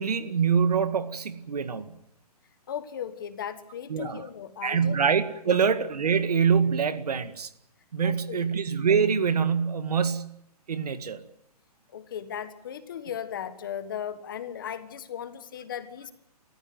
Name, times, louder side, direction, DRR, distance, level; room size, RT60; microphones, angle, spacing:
voice 1, 0.0-1.9 3.9-4.2 4.6-7.5 7.9-10.3 10.7-11.2, right 6 dB, 75° right, 11 dB, 2.0 m, -25 dB
voice 2, 2.7-5.0 5.5-5.7 8.0-8.5 11.9-16.1, left 9 dB, 35° left, 10 dB, 1.5 m, -37 dB
27.0 x 14.5 x 9.4 m, 0.80 s
hypercardioid pair, 180°, 20 cm